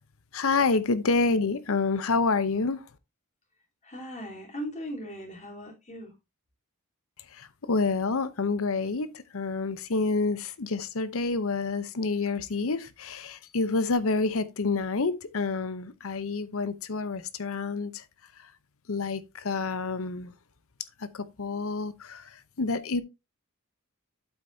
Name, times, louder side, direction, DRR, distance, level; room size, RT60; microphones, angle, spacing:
voice 1, 0.3-2.8 7.3-18.0 18.9-20.3 21.0-23.0, left 3 dB, 70° left, 0.8 m, -28 dB
voice 2, 3.8-6.1, equal, 35° left, 3.5 m, -38 dB
8.8 x 8.1 x 2.7 m
head